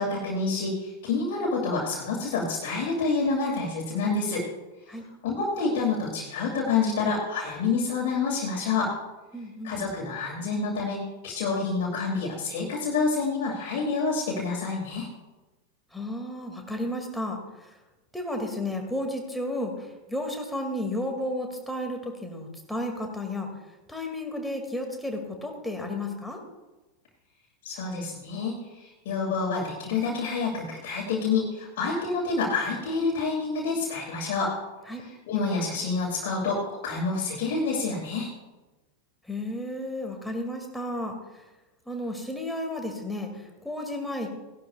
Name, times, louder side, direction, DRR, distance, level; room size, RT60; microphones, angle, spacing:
voice 1, 0.0-4.5 5.2-8.9 9.6-15.1 27.6-34.5 35.0-38.3, left 4 dB, 50° left, -4 dB, 2.6 m, -28 dB
voice 2, 9.3-9.8 15.9-17.7 18.1-23.5 23.9-26.4 34.9-35.0 39.2-41.4 41.9-44.3, left 1 dB, 5° left, 2 dB, 2.3 m, -33 dB
18.0 x 12.0 x 2.4 m, 1.1 s
figure-of-eight pair, 90°, 0 cm